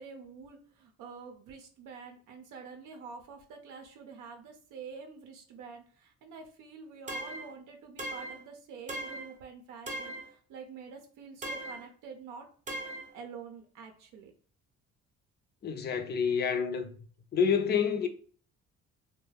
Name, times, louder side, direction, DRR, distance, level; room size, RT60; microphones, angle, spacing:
voice 1, 0.0-12.4 13.1-14.3, right 5 dB, 90° right, 0.5 m, -47 dB
sound 1, 7.1-7.5 8.0-8.4 8.9-9.3 9.9-10.3 11.4-11.9 12.7-13.1, right 1 dB, 25° right, 0.5 m, -38 dB
voice 2, 15.6-16.9 17.3-18.1, left 6 dB, 35° left, 0.4 m, -28 dB
2.3 x 2.1 x 3.2 m
cardioid pair, 90°, 30 cm